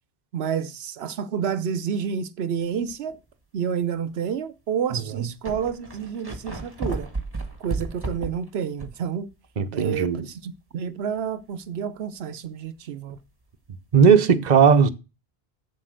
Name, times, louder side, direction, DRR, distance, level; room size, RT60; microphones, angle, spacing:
voice 1, 0.3-3.2 3.5-7.1 7.6-9.3 9.7-13.2, right 7 dB, 85° right, 0.9 m, -29 dB
sound 1, 2.9-3.2 3.8-3.9 4.8-4.9 5.1-9.1 9.4-9.5 13.1-13.2, right 3 dB, 25° right, 1.5 m, -33 dB
voice 2, 4.9-5.3 9.6-10.3 13.9-14.9, right 6 dB, 45° right, 0.9 m, -18 dB
7.6 x 7.4 x 6.4 m
omnidirectional pair, 1.0 m